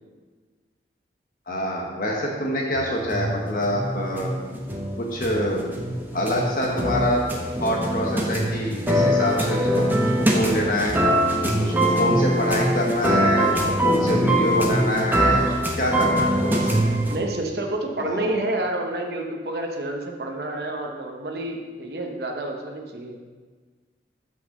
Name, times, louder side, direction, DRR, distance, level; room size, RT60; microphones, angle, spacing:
voice 1, 1.5-4.3 5.0-5.6 6.1-7.2 7.6-9.9 10.2-10.9 11.6-16.8 18.0-18.3, equal, 50° left, -1 dB, 1.1 m, -26 dB
sound 1, 2.8-17.2, right 1 dB, 10° right, 0.9 m, -23 dB
voice 2, 17.1-23.2, right 2 dB, 65° right, 2 dB, 0.8 m, -29 dB
6.2 x 5.6 x 6.5 m, 1.4 s
head